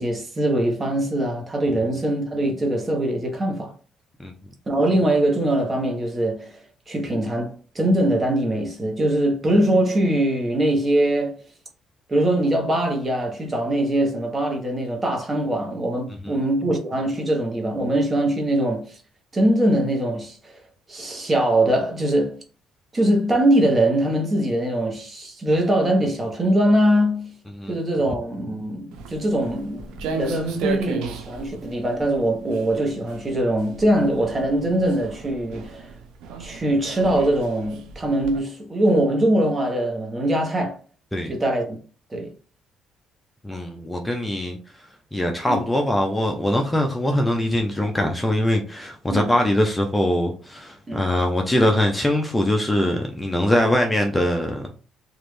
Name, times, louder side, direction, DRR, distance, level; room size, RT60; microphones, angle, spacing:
voice 1, 0.0-3.7 4.7-6.5 6.9-11.4 12.1-19.0 19.3-20.6 20.9-22.4 22.9-27.4 27.7-35.9 36.4-40.8 41.3-41.8 42.1-42.3 45.5-45.6 49.1-49.3 50.9-51.1, right 1 dB, 25° right, 1.1 m, -22 dB
Walk footsteps, 28.9-38.4, right 5 dB, 85° right, 0.5 m, -35 dB
voice 2, 43.4-44.8 45.1-54.7, left 1 dB, 10° left, 0.5 m, -22 dB
3.1 x 2.5 x 3.2 m
cardioid pair, 90°, 0 cm